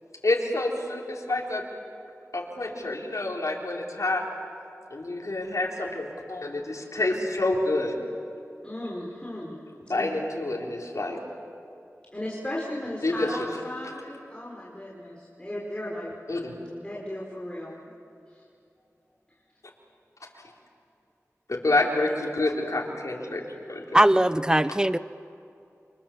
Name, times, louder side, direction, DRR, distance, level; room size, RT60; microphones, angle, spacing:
voice 1, 0.2-1.6 2.3-4.2 4.9-8.0 9.9-11.2 13.0-13.4 16.3-16.5 21.5-23.4 23.7-24.0, left 2 dB, 70° left, -2 dB, 4.0 m, -28 dB
voice 2, 8.6-9.6 9.9-10.1 12.1-16.1 16.8-17.8 18.3-18.4, left 1 dB, 20° left, -4 dB, 5.1 m, -36 dB
voice 3, 23.9-25.0, right 1 dB, 15° right, 15 dB, 0.7 m, -20 dB
28.5 x 26.0 x 7.4 m, 2.6 s
wide cardioid pair, 40°, 6 cm